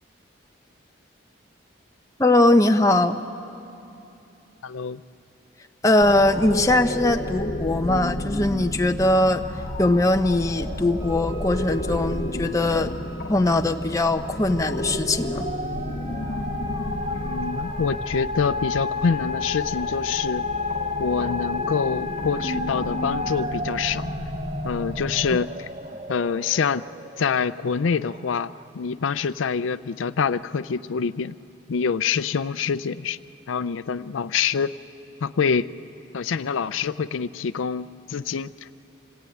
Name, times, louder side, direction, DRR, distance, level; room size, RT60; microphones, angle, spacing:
voice 1, 2.2-3.2 5.8-9.4 9.8-12.9 13.3-15.5, left 2 dB, 15° left, 5 dB, 0.7 m, -20 dB
voice 2, 4.6-5.0 17.1-20.4 21.0-24.1 24.6-25.7 26.1-26.8 27.2-31.3 31.7-33.2 33.5-34.7 35.2-35.7 36.1-38.7, left 6 dB, 85° left, 15 dB, 0.5 m, -26 dB
sound 1, 6.0-25.4, left 1 dB, 45° left, 1.0 m, -32 dB
sound 2, 10.5-28.7, left 3 dB, 30° right, 0.7 m, -33 dB
Wind instrument woodwind instrument, 11.0-16.2, right 3 dB, 15° right, 2.8 m, -49 dB
26.5 x 18.5 x 9.3 m, 2.8 s
head